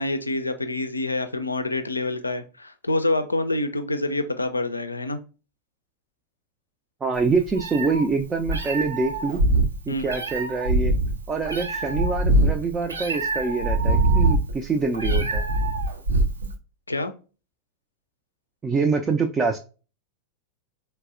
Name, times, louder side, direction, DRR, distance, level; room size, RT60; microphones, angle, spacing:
voice 1, 0.0-5.2 9.9-10.2 16.9-17.1, left 2 dB, 80° left, 9 dB, 0.4 m, -27 dB
voice 2, 7.0-9.4 9.9-10.9 11.3-15.4 18.6-19.6, right 4 dB, 15° right, 4 dB, 0.3 m, -25 dB
Meow, 7.2-16.5, right 2 dB, 75° right, 0.5 m, -23 dB
4.0 x 2.0 x 2.4 m, 0.34 s
figure-of-eight pair, 90°, 0 cm